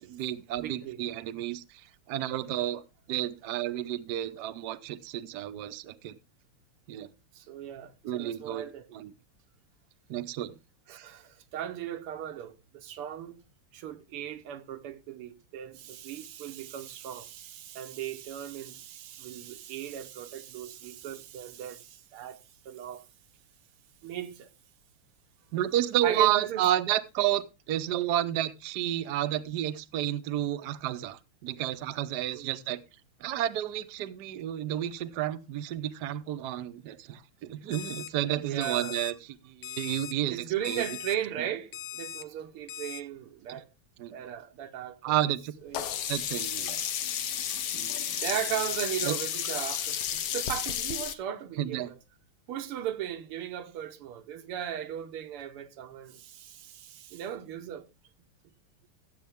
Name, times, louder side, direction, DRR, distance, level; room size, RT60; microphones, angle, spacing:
voice 1, 0.0-1.8 2.1-2.8 3.1-6.2 6.9-7.1 8.0-9.1 10.1-10.6 25.5-32.8 33.2-39.1 39.4-40.8 43.5-43.6 44.0-44.2 45.0-45.6 46.1-46.8 47.7-48.2 49.0-49.2 51.6-51.9, right 12 dB, 65° right, 1.1 m, -31 dB
voice 2, 0.6-1.0 6.9-7.1 7.3-8.9 10.9-13.4 13.7-23.0 24.0-24.5 26.0-26.6 32.3-32.6 38.4-39.0 40.3-43.7 44.1-45.1 45.6-45.9 48.2-52.0 52.5-57.9, right 10 dB, 80° right, 1.8 m, -37 dB
Alarm, 37.7-38.1 38.6-39.1 39.6-40.1 40.6-41.1 41.7-42.2 42.7-43.0, left 9 dB, 85° left, 1.8 m, -40 dB
Sink (filling or washing), 45.7-51.1, left 9 dB, 60° left, 1.3 m, -32 dB
14.5 x 7.8 x 3.5 m
omnidirectional pair, 2.4 m